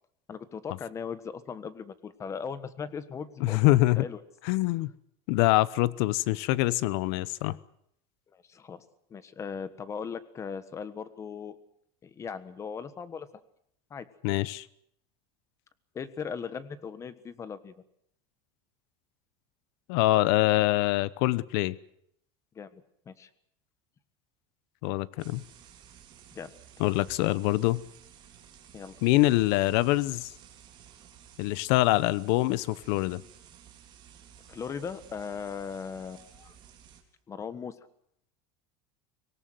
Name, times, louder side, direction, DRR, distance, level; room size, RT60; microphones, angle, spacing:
voice 1, 0.3-4.2 8.3-8.8 9.1-11.6 12.0-13.3 13.9-14.1 15.9-17.7 22.5-23.3 26.3-26.5 28.7-28.9 34.5-36.5 37.3-37.7, left 6 dB, 20° left, 14 dB, 1.4 m, -38 dB
voice 2, 3.4-4.0 4.4-4.9 5.3-7.6 14.2-14.7 19.9-21.8 24.8-25.4 26.8-27.8 29.0-30.3 31.4-33.2, left 18 dB, 65° left, 19 dB, 0.9 m, -24 dB
sound 1, 25.2-37.0, right 9 dB, 35° right, 3.9 m, -54 dB
24.5 x 18.5 x 7.9 m, 0.71 s
cardioid pair, 160°, 14 cm